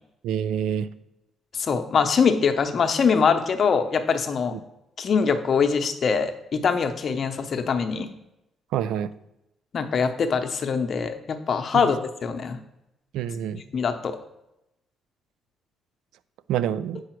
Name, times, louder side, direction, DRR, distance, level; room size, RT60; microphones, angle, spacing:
voice 1, 0.2-0.9 4.5-4.6 8.7-9.1 11.7-11.8 13.1-13.6 16.5-17.0, right 9 dB, 90° right, 15 dB, 0.4 m, -26 dB
voice 2, 1.6-4.5 5.0-8.1 9.7-12.6 13.7-14.2, left 6 dB, 50° left, 7 dB, 0.8 m, -23 dB
6.6 x 4.9 x 4.5 m, 0.89 s
cardioid pair, 90°, 0 cm